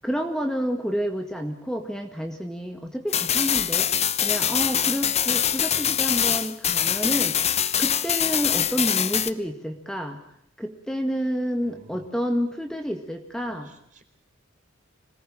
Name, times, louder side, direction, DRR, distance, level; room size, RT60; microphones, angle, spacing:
voice 1, 0.0-3.9 4.2-10.2 10.6-13.7, equal, 5° left, 4 dB, 1.8 m, -29 dB
sound 1, 3.1-9.3, left 9 dB, 35° left, 0.9 m, -23 dB
voice 2, 11.6-12.2 13.4-14.0, right 1 dB, 40° right, 6 dB, 4.3 m, -51 dB
26.0 x 19.0 x 8.7 m, 0.71 s
head